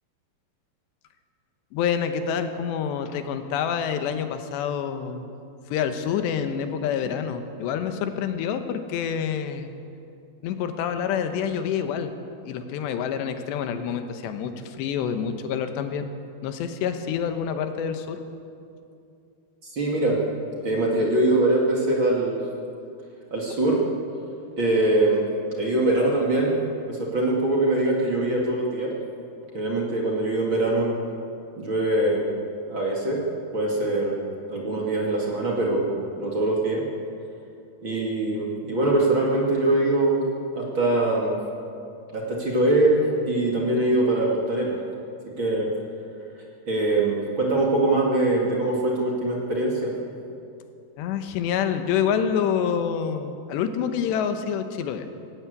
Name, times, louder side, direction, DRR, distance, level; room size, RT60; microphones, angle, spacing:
voice 1, 1.7-5.3 5.7-9.7 10.4-12.1 12.5-16.1 16.4-18.2 51.0-55.1, left 7 dB, 90° left, 8 dB, 3.4 m, -27 dB
voice 2, 19.6-20.2 20.6-22.4 23.3-23.8 24.6-25.3 25.5-26.6 26.8-28.9 29.5-31.0 31.6-32.3 32.7-33.2 33.5-34.2 34.5-35.9 36.2-36.8 37.8-40.2 40.5-41.4 42.1-44.7 45.4-45.7 46.7-49.9, right 2 dB, 35° right, -2 dB, 2.6 m, -23 dB
18.0 x 17.5 x 8.2 m, 2.6 s
omnidirectional pair, 4.9 m